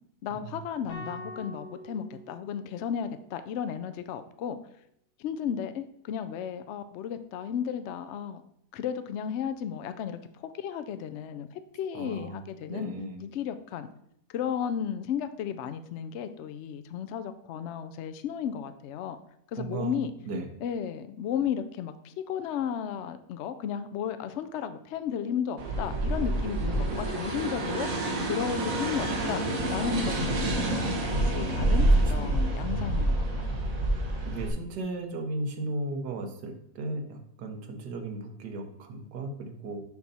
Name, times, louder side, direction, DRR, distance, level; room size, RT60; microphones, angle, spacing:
voice 1, 0.2-4.6 5.2-8.4 8.7-12.9 13.2-13.9 14.3-19.2 19.5-20.1 20.6-27.9 28.3-29.4 29.7-33.5, left 8 dB, 75° left, 10 dB, 0.6 m, -34 dB
sound 1, 0.9-3.2, left 1 dB, 45° left, 2.1 m, -45 dB
voice 2, 11.9-12.4 12.6-13.2 19.6-20.0 20.3-20.5 30.7-31.2 32.2-32.4 34.2-39.8, right 2 dB, 80° right, 5 dB, 1.6 m, -36 dB
sound 2, 25.6-34.5, right 1 dB, 60° right, 1.6 m, -27 dB
6.6 x 5.7 x 4.1 m, 0.75 s
omnidirectional pair, 1.7 m